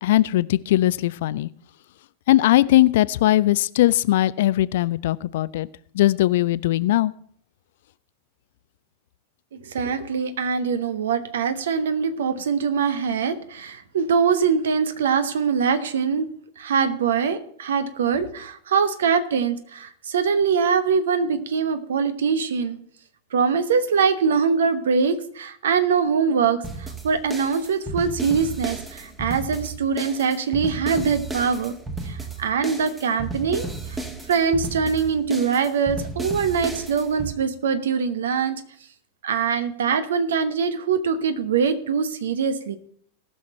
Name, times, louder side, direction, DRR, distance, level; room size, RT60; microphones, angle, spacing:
voice 1, 0.0-1.5 2.3-5.7 5.9-7.1, left 15 dB, 55° left, 19 dB, 0.3 m, -19 dB
voice 2, 9.6-16.3 16.6-22.8 23.3-26.6 27.0-31.7 32.1-33.7 34.3-38.6 39.2-42.8, right 6 dB, 65° right, 11 dB, 1.0 m, -23 dB
sound 1, 26.6-37.3, right 3 dB, 10° right, 1.4 m, -33 dB
19.0 x 6.4 x 4.3 m, 0.63 s
figure-of-eight pair, 90°, 0 cm